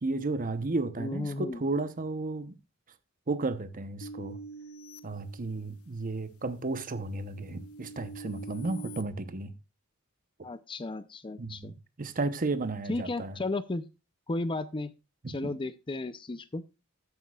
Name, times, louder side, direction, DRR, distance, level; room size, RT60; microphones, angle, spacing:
voice 1, 0.0-2.5 3.3-4.4 5.0-9.5 11.4-11.7 12.0-13.3 15.2-15.5, right 3 dB, 40° right, 0.8 m, -33 dB
voice 2, 1.0-1.6 10.4-11.8 12.9-13.8 14.3-14.9 15.3-16.6, left 2 dB, 25° left, 0.5 m, -34 dB
sound 1, 4.0-6.0 6.5-9.0, right 2 dB, 85° left, 0.8 m, -46 dB
12.5 x 9.5 x 2.4 m
head